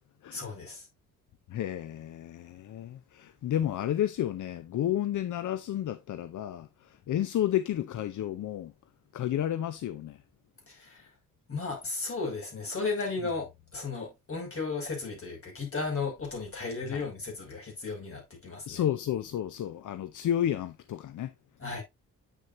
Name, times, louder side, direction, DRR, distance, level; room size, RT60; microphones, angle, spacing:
voice 1, 0.3-0.9 10.7-11.1 11.5-18.8 21.6-21.8, left 4 dB, 45° left, 5.4 m, -35 dB
voice 2, 1.5-8.7 9.1-10.2 16.9-17.1 18.7-21.3, left 11 dB, 65° left, 0.6 m, -31 dB
8.4 x 6.6 x 2.6 m
cardioid pair, 110°, 32 cm